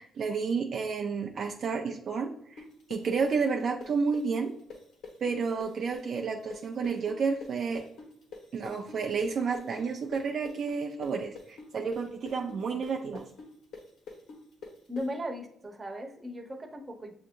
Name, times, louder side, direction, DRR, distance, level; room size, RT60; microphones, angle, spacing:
voice 1, 0.0-4.5 5.2-7.8 8.5-13.3, right 5 dB, 60° right, 2 dB, 0.5 m, -31 dB
sound 1, 2.6-10.2 10.4-15.0, left 4 dB, 75° left, 1.3 m, -45 dB
voice 2, 14.9-17.1, equal, 25° right, 2 dB, 1.0 m, -37 dB
7.0 x 2.9 x 2.5 m, 0.69 s
cardioid pair, 90°, 0 cm